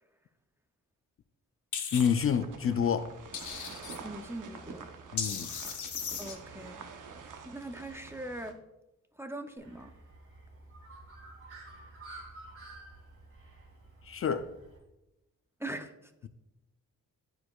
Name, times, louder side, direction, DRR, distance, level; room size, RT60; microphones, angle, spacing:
sound 1, 1.7-2.1 3.3-4.0 5.2-6.4, left 6 dB, 70° left, 0.9 m, -36 dB
voice 1, 1.9-3.1 5.1-5.5 14.1-14.5, left 7 dB, 45° left, 10 dB, 0.4 m, -28 dB
sound 2, 1.9-8.5, right 5 dB, 85° right, 0.8 m, -47 dB
voice 2, 4.0-4.9 6.2-6.9 7.2-8.6 9.2-9.9 15.6-16.1, right 1 dB, 10° right, 6 dB, 0.5 m, -41 dB
Bird, 9.6-14.8, right 2 dB, 45° right, 2.4 m, -51 dB
11.5 x 4.7 x 2.3 m, 0.93 s
wide cardioid pair, 110°, 30 cm